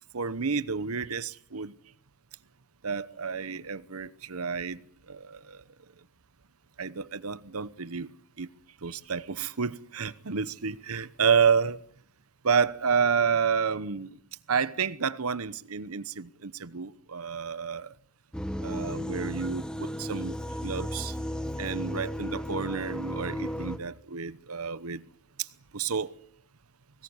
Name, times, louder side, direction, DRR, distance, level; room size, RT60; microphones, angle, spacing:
voice 1, 0.1-1.7 2.8-4.8 5.1-5.6 6.8-8.1 8.4-8.5 8.8-11.8 12.4-14.1 14.5-17.9 18.6-20.4 20.6-21.2 21.6-25.0 25.4-25.5 25.7-26.1, right 6 dB, 80° right, 1.0 m, -29 dB
sound 1, 18.3-23.8, equal, 5° left, 1.6 m, -34 dB
24.5 x 19.5 x 9.7 m
head